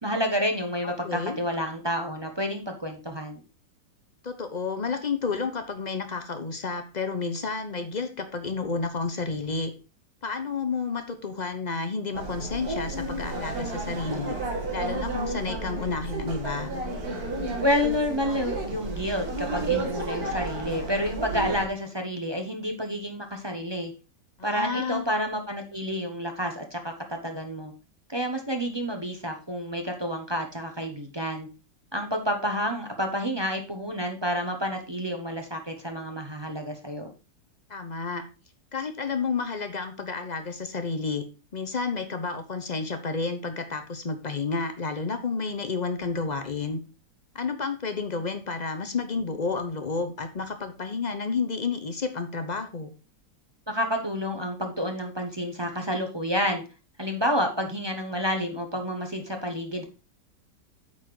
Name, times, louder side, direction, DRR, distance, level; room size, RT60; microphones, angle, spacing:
voice 1, 0.0-3.4 17.6-23.9 24.4-27.7 28.1-31.5 31.9-37.1 53.7-56.6 57.0-59.9, equal, 20° right, 3 dB, 0.7 m, -29 dB
voice 2, 0.8-1.4 4.2-9.7 10.2-14.3 14.7-16.7 24.4-25.0 37.7-38.2 38.7-41.2 41.5-46.8 47.3-52.9, left 4 dB, 40° left, 7 dB, 0.6 m, -31 dB
sound 1, 12.1-21.7, right 2 dB, 60° right, 2.0 m, -32 dB
8.7 x 4.3 x 4.7 m, 0.33 s
omnidirectional pair, 1.9 m